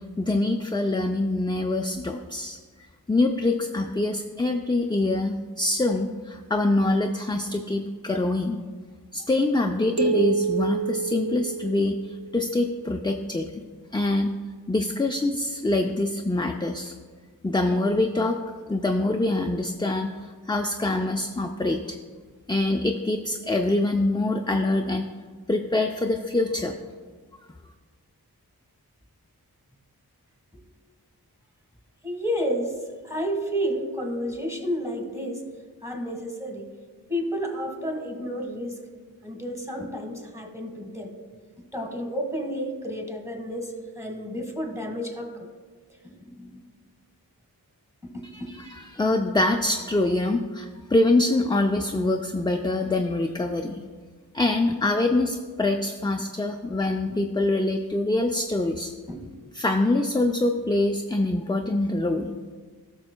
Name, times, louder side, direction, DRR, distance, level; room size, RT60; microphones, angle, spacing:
voice 1, 0.2-8.7 9.1-13.6 13.9-14.4 14.7-16.9 17.4-18.4 18.7-22.0 22.5-25.1 25.5-26.8 48.3-53.8 54.3-58.9 59.5-62.4, left 2 dB, 15° left, 3 dB, 0.4 m, -25 dB
sound 1, 10.0-12.4, right 5 dB, 85° right, 0.6 m, -27 dB
voice 2, 32.0-32.8 33.0-35.5 35.8-36.7 37.1-38.8 39.2-41.1 41.7-45.5 46.0-46.7 48.0-48.5 59.1-59.3, equal, 10° right, 2 dB, 1.5 m, -31 dB
16.0 x 6.4 x 2.2 m, 1.5 s
wide cardioid pair, 50°, 37 cm